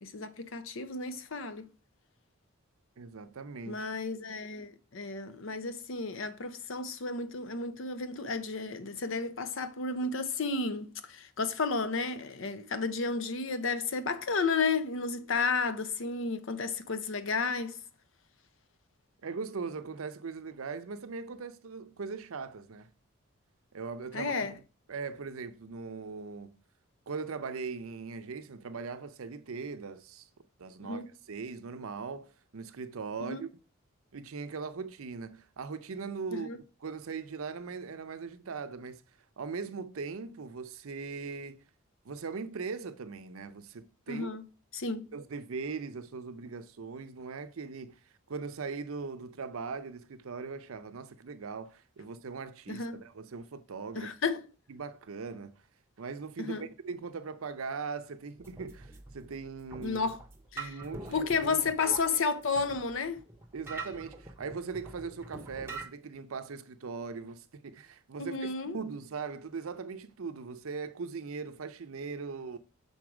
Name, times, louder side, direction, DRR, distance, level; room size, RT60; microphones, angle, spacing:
voice 1, 0.0-1.7 3.7-17.8 24.1-24.5 30.8-31.1 33.2-33.4 36.4-36.6 44.1-44.4 44.7-45.1 52.7-53.0 53.9-54.5 56.4-56.7 59.8-60.2 60.5-60.7 61.1-63.2 68.2-68.8, left 4 dB, 65° left, 0.6 m, -32 dB
voice 2, 3.0-3.9 19.2-22.9 23.7-24.6 24.9-26.6 27.1-30.3 30.6-33.5 34.1-39.0 39.4-41.6 42.0-44.3 45.1-48.0 48.3-54.1 54.7-55.5 56.0-60.0 60.6-61.6 63.5-72.6, right 5 dB, 80° right, 0.6 m, -40 dB
sound 1, 58.4-65.8, right 3 dB, 10° right, 0.8 m, -45 dB
6.2 x 4.0 x 4.8 m
head